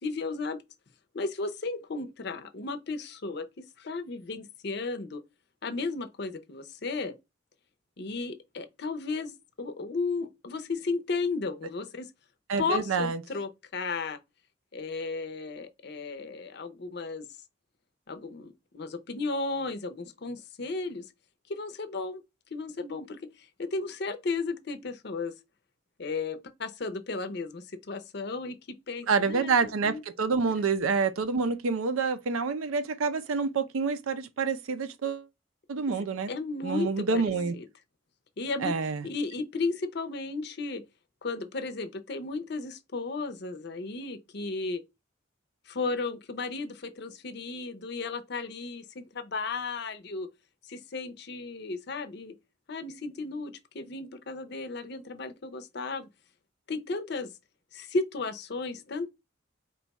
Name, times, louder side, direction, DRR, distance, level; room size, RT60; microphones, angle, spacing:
voice 1, 0.0-0.6 1.1-5.2 5.6-7.1 8.0-9.3 9.6-12.1 12.6-14.2 14.7-17.3 18.1-21.0 21.5-22.2 22.5-25.3 26.0-30.0 30.5-30.7 35.9-37.7 38.4-40.8 41.2-44.8 45.7-50.3 50.6-52.3 52.7-56.1 56.7-57.3 57.7-59.1, left 3 dB, 50° left, 0.6 m, -34 dB
voice 2, 12.5-13.2 29.1-35.3 35.7-36.3 36.6-37.5 38.6-39.0, right 5 dB, 85° right, 0.5 m, -27 dB
4.5 x 2.3 x 4.0 m
head